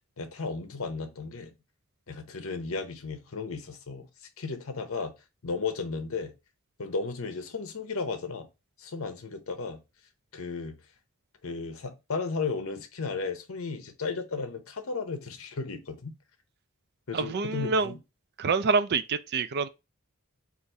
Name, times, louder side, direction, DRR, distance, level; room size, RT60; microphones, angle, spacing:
voice 1, 0.2-1.5 2.1-4.1 4.4-5.1 5.4-6.3 6.8-8.5 8.8-9.8 10.3-10.8 11.4-16.1 17.1-18.0, left 4 dB, 65° left, 0.8 m, -34 dB
voice 2, 17.1-17.9 18.4-19.7, right 4 dB, 45° right, 0.4 m, -26 dB
4.0 x 2.5 x 4.5 m
head